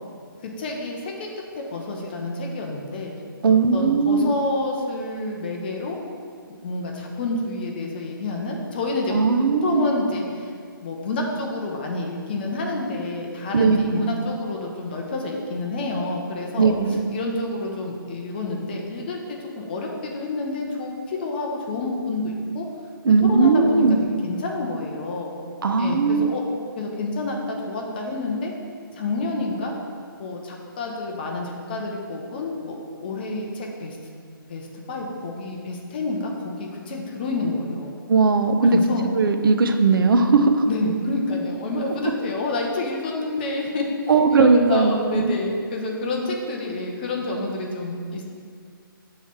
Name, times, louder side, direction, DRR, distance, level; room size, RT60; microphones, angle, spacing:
voice 1, 0.4-1.3 1.5-3.1 3.4-6.0 6.5-10.5 10.8-16.8 17.1-22.7 23.1-25.3 25.8-26.4 26.8-28.5 28.9-29.7 30.2-32.8 33.0-34.0 34.5-38.0 38.7-39.1 40.7-48.2, left 2 dB, 25° left, 0 dB, 0.6 m, -29 dB
voice 2, 3.4-4.3 9.1-9.9 13.5-14.1 16.6-17.1 23.0-24.0 25.6-26.4 38.1-38.8 39.1-40.6 44.1-45.4, right 4 dB, 70° right, 7 dB, 0.5 m, -18 dB
6.4 x 3.1 x 5.6 m, 2.2 s
hypercardioid pair, 165°, 12 cm